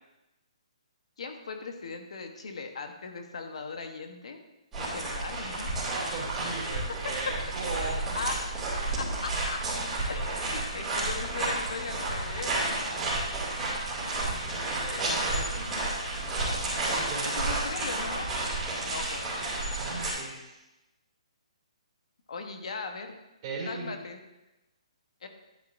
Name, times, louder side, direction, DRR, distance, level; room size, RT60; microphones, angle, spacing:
voice 1, 1.2-4.4 4.7-5.7 7.0-7.1 8.1-8.4 9.0-9.6 10.0-12.5 14.9-15.2 16.8-17.1 17.4-18.3 18.9-19.3 22.3-23.2 23.7-24.2 25.2-25.3, left 4 dB, 65° left, 5 dB, 1.2 m, -38 dB
sound 1, 4.7-20.1, right 2 dB, 10° right, 2.5 m, -31 dB
voice 2, 5.8-8.2 10.7-10.8 12.9-13.1 14.0-15.9 17.0-17.3 19.8-20.6 23.4-24.0, right 3 dB, 25° right, -5 dB, 2.8 m, -38 dB
11.5 x 8.7 x 2.7 m, 0.96 s
hypercardioid pair, 170°, 4 cm